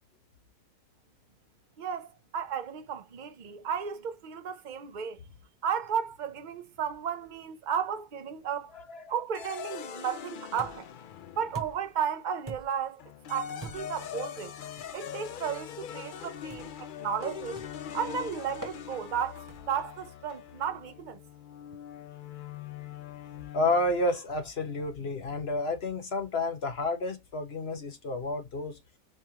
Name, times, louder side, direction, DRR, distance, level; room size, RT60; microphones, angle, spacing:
voice 1, 1.8-5.2 5.6-8.7 9.1-10.9 11.4-13.0 13.3-14.5 14.9-17.6 17.9-21.2, right 7 dB, 45° right, 0.7 m, -34 dB
sound 1, 9.3-11.9 13.0-24.1, left 9 dB, 90° left, 0.4 m, -42 dB
sound 2, 10.6-11.0 11.5-12.0 12.5-12.9 13.6-14.0 14.8-15.0 16.5-16.9 17.6-17.9 18.6-18.8 19.5-19.8, right 3 dB, 15° right, 0.9 m, -44 dB
voice 2, 23.5-28.8, left 2 dB, 45° left, 1.4 m, -30 dB
4.8 x 3.3 x 3.0 m
omnidirectional pair, 1.5 m